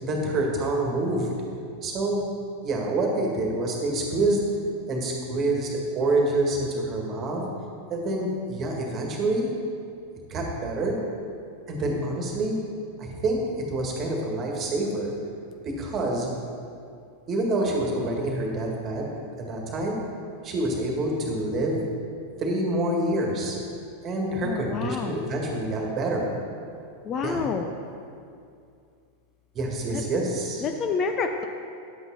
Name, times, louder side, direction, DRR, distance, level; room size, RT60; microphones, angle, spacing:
voice 1, 0.0-1.3 1.8-2.3 2.6-4.4 4.9-7.4 7.9-9.5 10.3-11.0 11.7-12.6 13.0-13.4 13.7-15.1 15.6-16.3 17.3-19.1 19.4-20.0 20.4-21.8 22.4-23.6 24.0-26.3 27.2-27.4 29.5-30.6, right 2 dB, 30° right, 0 dB, 1.8 m, -27 dB
voice 2, 24.4-25.2 27.0-27.7 29.9-30.0 30.6-31.4, left 5 dB, 30° left, 5 dB, 0.5 m, -28 dB
10.5 x 8.1 x 4.1 m, 2.4 s
figure-of-eight pair, 90°, 0 cm